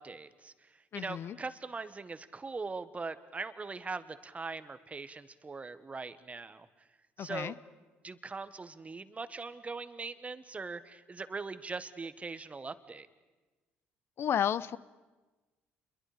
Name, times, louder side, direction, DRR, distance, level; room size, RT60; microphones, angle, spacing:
voice 1, 0.0-6.7 7.2-7.5 8.0-13.1, right 4 dB, 30° right, 12 dB, 1.4 m, -41 dB
voice 2, 0.9-1.4 7.2-7.5 14.2-14.8, left 9 dB, 55° left, 18 dB, 0.7 m, -32 dB
28.5 x 22.5 x 5.1 m, 1.2 s
hypercardioid pair, 60°, 5 cm